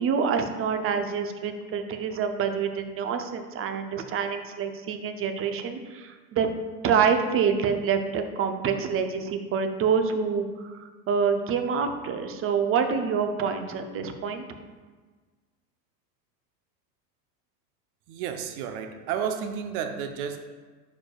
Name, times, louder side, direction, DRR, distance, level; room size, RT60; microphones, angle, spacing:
voice 1, 0.0-6.5 6.8-14.5, right 6 dB, 25° right, 6 dB, 0.6 m, -26 dB
voice 2, 18.1-20.4, right 7 dB, 60° right, 6 dB, 0.8 m, -31 dB
10.0 x 4.8 x 2.4 m, 1.4 s
hypercardioid pair, 95°, 50 cm